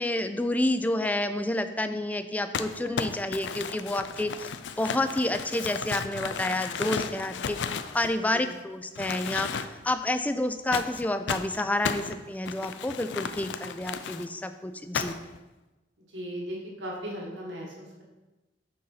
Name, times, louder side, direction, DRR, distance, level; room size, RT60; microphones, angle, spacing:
voice 1, 0.0-4.5 4.8-15.2, left 1 dB, 10° left, 9 dB, 0.3 m, -29 dB
Crumpling crinkling, 2.5-8.6 9.0-9.9 10.7-14.3 14.9-15.4, left 6 dB, 80° left, 0.4 m, -34 dB
voice 2, 16.1-18.0, equal, 90° right, -2 dB, 1.7 m, -37 dB
6.5 x 4.1 x 5.6 m, 1.1 s
head